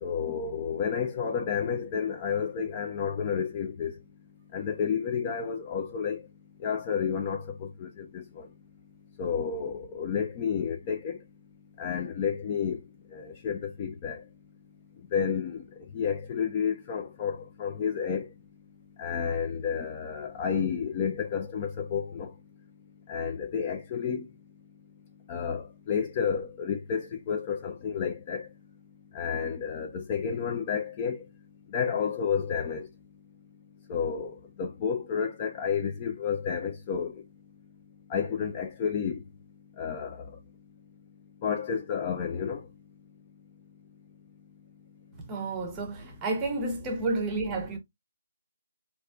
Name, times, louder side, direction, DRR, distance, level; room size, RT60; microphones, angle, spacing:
voice 1, 0.0-3.9 4.5-6.2 6.6-8.5 9.2-11.2 11.8-12.8 13.1-14.2 15.1-15.6 15.9-18.3 19.0-22.3 23.1-24.2 25.3-28.5 29.1-31.2 31.7-32.9 33.9-34.3 34.6-37.1 38.1-39.2 39.8-40.3 41.4-42.6, left 7 dB, 25° left, 0.4 m, -30 dB
voice 2, 45.2-47.8, right 2 dB, 15° right, 0.7 m, -31 dB
4.1 x 2.4 x 2.3 m
figure-of-eight pair, 150°, 0 cm